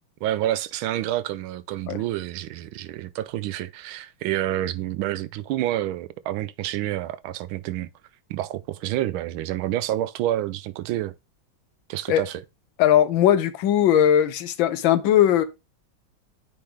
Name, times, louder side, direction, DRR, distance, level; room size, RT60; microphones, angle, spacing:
voice 1, 0.2-7.9 8.3-11.1 11.9-12.4, right 13 dB, 85° right, 1.4 m, -28 dB
voice 2, 12.8-15.4, left 10 dB, 80° left, 1.4 m, -19 dB
8.7 x 3.8 x 3.3 m
omnidirectional pair, 2.2 m